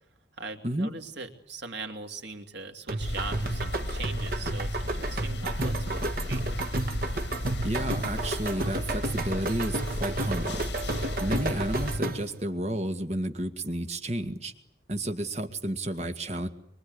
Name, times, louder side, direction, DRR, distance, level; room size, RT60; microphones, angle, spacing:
voice 1, 0.4-6.5, right 3 dB, 70° right, 5 dB, 3.0 m, -40 dB
sound 1, 2.9-12.4, right 2 dB, 50° right, 1.8 m, -32 dB
sound 2, 3.0-12.0, left 1 dB, 75° left, 1.9 m, -34 dB
voice 2, 7.6-10.6 11.2-14.5 14.9-16.5, right 1 dB, 35° right, 7 dB, 2.1 m, -31 dB
24.5 x 24.0 x 9.7 m, 0.69 s
head